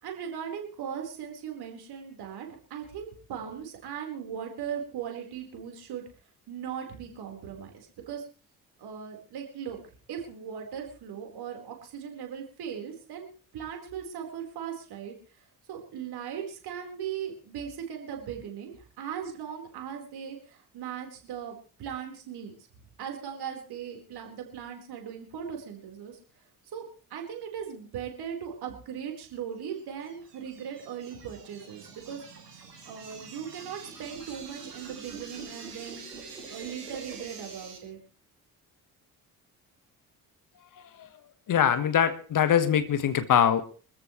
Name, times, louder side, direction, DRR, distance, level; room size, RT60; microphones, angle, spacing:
voice 1, 0.0-6.0 6.5-8.2 8.8-9.8 10.1-13.3 13.5-22.6 23.0-26.2 26.7-32.2 32.8-36.0 36.5-38.0, right 8 dB, 55° right, 2 dB, 4.5 m, -38 dB
sound 1, 29.8-37.8, right 5 dB, 80° right, 2.3 m, -45 dB
voice 2, 41.5-43.6, left 9 dB, 45° left, 12 dB, 1.6 m, -23 dB
25.0 x 14.0 x 3.2 m, 0.38 s
figure-of-eight pair, 45°, 46 cm